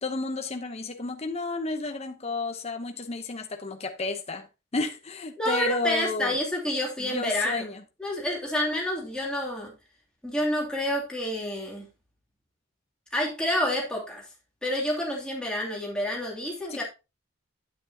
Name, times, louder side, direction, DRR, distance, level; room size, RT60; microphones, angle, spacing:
voice 1, 0.0-6.4 7.0-7.8 16.7-16.8, left 3 dB, 30° left, 0.8 m, -32 dB
voice 2, 5.4-7.7 8.0-9.7 10.2-11.9 13.1-14.3 14.6-16.8, left 1 dB, 5° left, 2.7 m, -28 dB
9.1 x 8.5 x 2.8 m
head